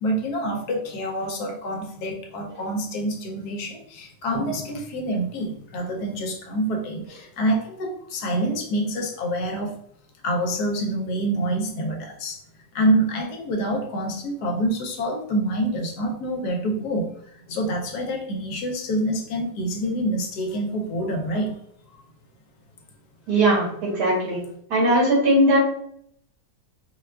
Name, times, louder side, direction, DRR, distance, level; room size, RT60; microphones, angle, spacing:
voice 1, 0.0-9.7 10.2-12.4 12.7-17.1 17.5-21.5, right 1 dB, 75° left, 1 dB, 1.1 m, -26 dB
voice 2, 23.3-24.4 24.7-25.6, right 1 dB, 75° right, -4 dB, 1.7 m, -19 dB
4.1 x 2.3 x 2.2 m, 0.69 s
omnidirectional pair, 1.8 m